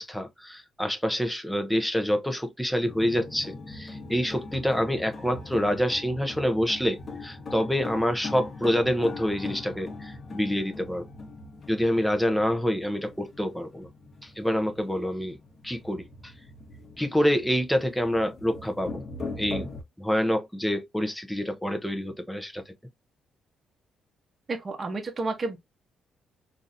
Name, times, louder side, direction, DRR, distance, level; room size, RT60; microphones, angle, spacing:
voice 1, 0.0-11.0 11.7-13.9 14.2-15.4 15.6-16.3 17.0-19.0 19.4-19.6 20.0-22.6, equal, 5° left, 0.7 m, -27 dB
sound 1, 2.8-19.8, left 3 dB, 40° left, 1.2 m, -41 dB
voice 2, 24.5-25.6, right 3 dB, 35° right, 0.9 m, -31 dB
3.8 x 2.6 x 2.6 m
cardioid pair, 90°, 0 cm